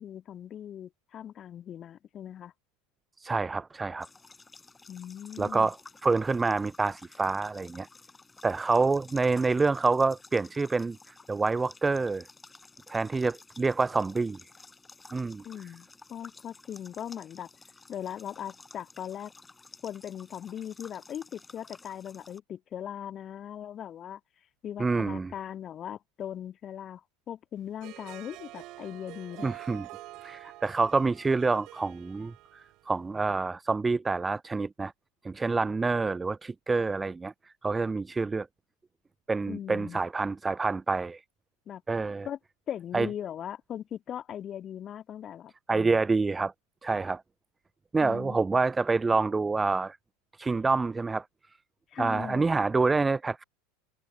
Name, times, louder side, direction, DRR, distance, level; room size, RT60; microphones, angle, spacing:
voice 1, 0.0-2.5 4.9-5.7 15.4-17.5 17.9-19.3 19.8-24.2 24.6-27.0 27.3-29.5 39.5-40.0 41.7-41.8 42.2-42.4 42.7-46.0 48.0-48.4 51.9-52.7, left 10 dB, 35° left, 1.9 m, -39 dB
voice 2, 3.2-4.1 5.4-5.8 6.0-7.9 8.4-12.3 12.9-14.4 15.1-15.4 24.8-25.3 29.4-29.9 30.2-34.9 35.2-37.3 37.6-38.5 39.3-41.2 41.9-42.3 42.9-43.1 45.7-46.5 46.8-47.2 47.9-50.0 50.4-51.2 52.0-53.4, right 3 dB, 15° right, 0.3 m, -27 dB
sound 1, 4.0-22.4, left 3 dB, 15° left, 7.8 m, -53 dB
Harp, 27.7-33.1, right 19 dB, 45° right, 5.8 m, -47 dB
figure-of-eight pair, 80°, 0 cm